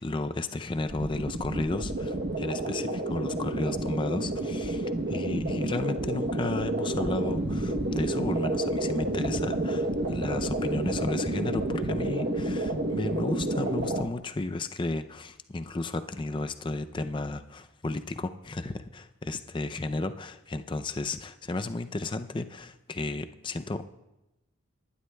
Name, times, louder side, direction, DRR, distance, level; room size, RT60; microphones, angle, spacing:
voice 1, 0.0-23.9, left 2 dB, 20° left, 10 dB, 0.4 m, -33 dB
sound 1, 0.9-14.0, right 1 dB, 45° right, 0.9 m, -30 dB
26.0 x 11.5 x 2.2 m, 0.97 s
head